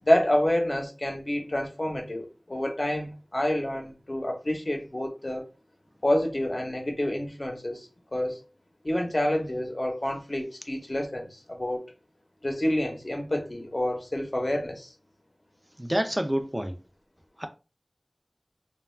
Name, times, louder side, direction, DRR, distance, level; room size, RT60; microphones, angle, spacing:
voice 1, 0.0-5.5 6.0-8.4 8.8-11.8 12.4-14.9, left 1 dB, 50° left, 0.7 m, -28 dB
voice 2, 15.8-16.8 17.4-17.5, equal, 20° right, 0.4 m, -27 dB
2.3 x 2.3 x 3.1 m
wide cardioid pair, 45°, 0 cm